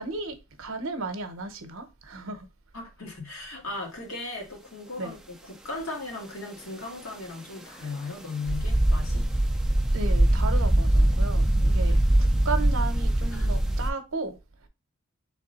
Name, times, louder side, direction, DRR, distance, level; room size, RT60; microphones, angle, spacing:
voice 1, 0.0-2.5 5.0-5.2 9.9-14.4, right 3 dB, 60° right, 0.7 m, -34 dB
voice 2, 2.7-5.2 5.4-9.3 13.3-13.5, left 3 dB, 70° left, 1.4 m, -37 dB
sound 1, 8.5-13.9, right 1 dB, ahead, 0.3 m, -22 dB
3.6 x 3.2 x 4.0 m
head